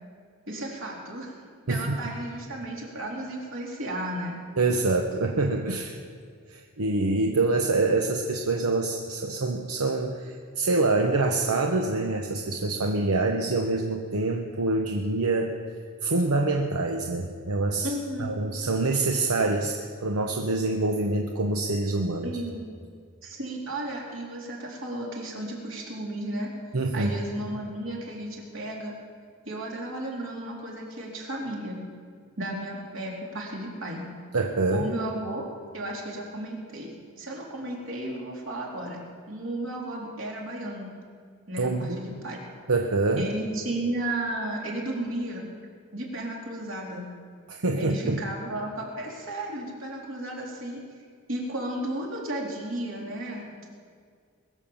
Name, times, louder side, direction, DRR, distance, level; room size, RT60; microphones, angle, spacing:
voice 1, 0.5-1.4 1.7-4.4 17.8-18.3 22.2-22.6 23.2-26.5 26.9-28.9 29.4-31.8 32.4-34.0 34.7-35.4 35.7-39.0 39.3-40.9 41.5-42.4 43.2-45.5 45.9-47.1 47.8-50.8 51.3-53.7, right 1 dB, 60° right, -3 dB, 3.4 m, -34 dB
voice 2, 4.6-6.0 6.5-15.5 16.0-17.9 18.2-22.3 26.7-27.1 34.3-34.9 41.6-42.0 42.7-43.3 47.5-48.2, right 3 dB, 85° right, 3 dB, 0.9 m, -26 dB
21.0 x 7.4 x 7.0 m, 2.1 s
head